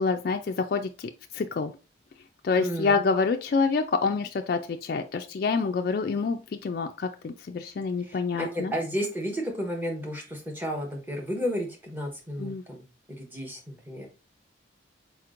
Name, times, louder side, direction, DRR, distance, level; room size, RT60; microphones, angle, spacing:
voice 1, 0.0-1.7 2.4-8.7 12.4-12.6, left 4 dB, 50° left, 5 dB, 0.3 m, -27 dB
voice 2, 2.6-3.0 8.0-14.1, equal, 10° right, 1 dB, 0.9 m, -32 dB
4.4 x 4.2 x 2.5 m, 0.31 s
head